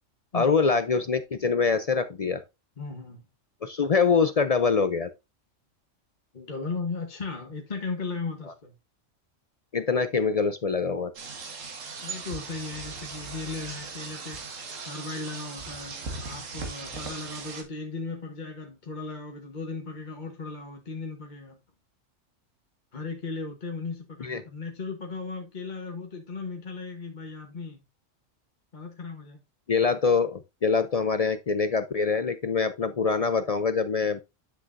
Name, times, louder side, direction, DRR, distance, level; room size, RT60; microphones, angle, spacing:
voice 1, 0.3-2.4 3.6-5.1 9.7-11.1 24.2-24.4 29.7-34.2, left 5 dB, 55° left, 0.4 m, -24 dB
voice 2, 2.8-3.2 6.3-8.7 12.0-21.6 22.9-27.8 28.7-29.4, left 4 dB, 40° left, 1.2 m, -36 dB
sound 1, 11.2-17.6, right 4 dB, 80° right, 1.8 m, -38 dB
10.0 x 6.1 x 2.5 m
omnidirectional pair, 1.3 m